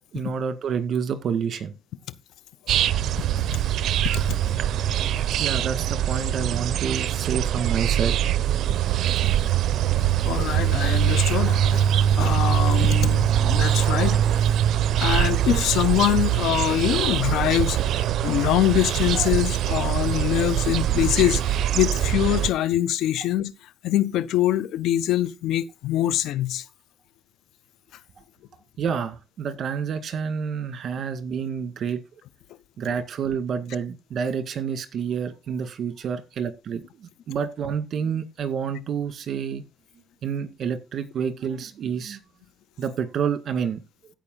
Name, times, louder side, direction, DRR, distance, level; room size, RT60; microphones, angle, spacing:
voice 1, 0.1-1.7 5.4-8.1 28.8-32.2 32.8-39.6 40.2-42.2 42.8-43.8, right 7 dB, 60° right, 1.9 m, -28 dB
sound 1, 2.7-22.5, right 11 dB, 75° right, 0.6 m, -23 dB
voice 2, 10.2-11.8 12.1-14.5 15.0-23.5 23.8-26.6, left 13 dB, 85° left, 0.6 m, -24 dB
15.5 x 5.4 x 3.9 m
cardioid pair, 90°, 0 cm